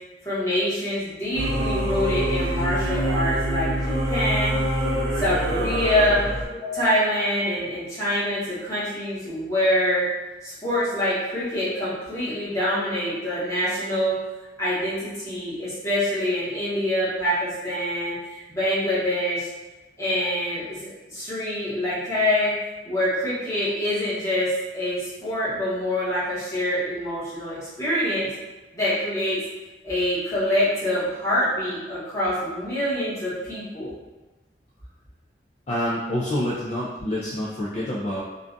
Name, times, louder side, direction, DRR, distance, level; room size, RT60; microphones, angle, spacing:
voice 1, 0.2-4.5 5.2-6.2 6.7-10.1 10.4-14.2 14.6-19.5 20.0-22.5 22.8-28.3 28.7-29.4 29.8-33.9, left 1 dB, 15° left, -11 dB, 1.0 m, -25 dB
Singing / Musical instrument, 1.3-6.5, right 1 dB, 80° right, 0.7 m, -25 dB
voice 2, 35.7-38.2, left 1 dB, 40° left, -6 dB, 0.3 m, -27 dB
2.5 x 2.2 x 2.5 m, 1.2 s
head